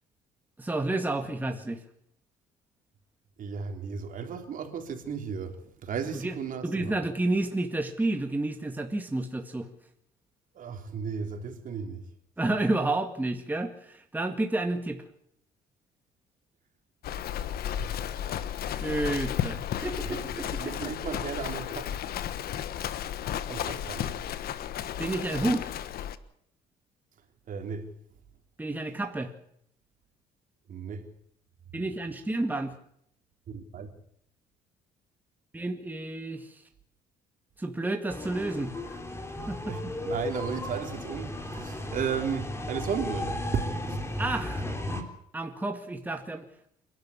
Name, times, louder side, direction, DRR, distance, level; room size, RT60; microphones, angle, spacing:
voice 1, 0.6-1.8 6.1-6.3 6.6-9.7 12.4-15.0 18.8-20.9 25.0-25.7 28.6-29.3 31.7-32.7 35.5-36.5 37.6-39.0 39.5-39.9 44.2-44.6 45.3-46.5, right 2 dB, 10° right, 2.0 m, -30 dB
voice 2, 3.4-6.9 10.5-12.1 17.8-18.0 20.0-20.2 20.5-21.9 23.5-24.6 27.5-27.9 30.7-31.1 33.5-33.9 39.6-44.2, right 6 dB, 50° right, 3.7 m, -35 dB
Livestock farm animals working animals, 17.0-26.2, left 10 dB, 65° left, 1.4 m, -33 dB
sound 1, 38.1-45.0, left 1 dB, 15° left, 3.7 m, -35 dB
28.5 x 12.0 x 8.5 m
cardioid pair, 110°, 17 cm